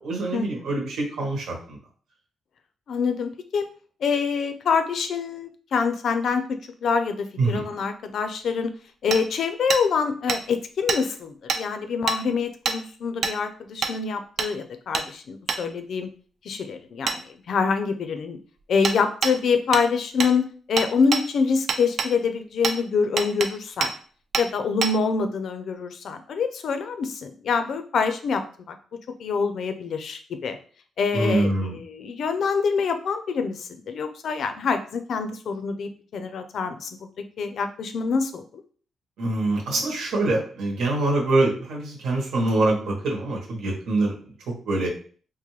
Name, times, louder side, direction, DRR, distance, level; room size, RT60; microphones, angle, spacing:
voice 1, 0.0-1.8 7.4-7.7 31.1-31.8 39.2-44.2 44.6-44.9, right 2 dB, 85° right, -1 dB, 1.3 m, -24 dB
voice 2, 2.9-3.7 4.0-8.7 9.0-16.1 16.4-18.4 18.7-23.9 24.4-28.8 29.2-30.6 31.0-38.6, left 5 dB, 60° left, 8 dB, 0.5 m, -26 dB
Hammer, 9.1-9.2 9.7-9.8 10.3-10.4 10.9-11.0 11.5-11.6 12.1-12.2 12.6-12.8 13.2-13.4 13.8-13.9 14.4-14.5 14.9-15.1 15.5-15.6 17.1-17.2 18.8-19.0 19.2-19.3 19.7-19.9 20.2-20.3 20.8-21.2 21.7-22.1 22.6-22.8 23.2-23.5 23.8-23.9 24.3-24.5 24.8-24.9, right 5 dB, 50° right, 0.5 m, -25 dB
3.7 x 2.6 x 3.1 m, 0.43 s
cardioid pair, 125°, 0 cm